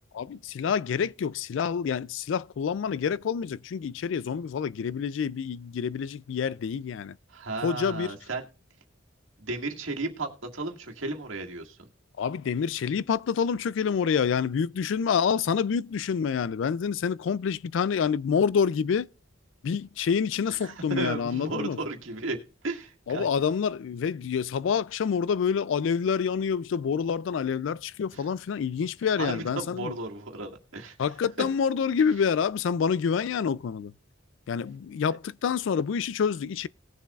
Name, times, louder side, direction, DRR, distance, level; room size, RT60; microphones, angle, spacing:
voice 1, 0.1-7.2 7.6-8.2 12.2-19.1 19.6-21.8 23.1-29.9 31.0-33.9 34.5-36.7, left 6 dB, 65° left, 0.3 m, -27 dB
voice 2, 7.3-8.4 9.4-11.8 20.6-22.4 22.6-23.3 29.2-31.0, right 3 dB, 80° right, 1.9 m, -34 dB
19.0 x 7.0 x 2.3 m
head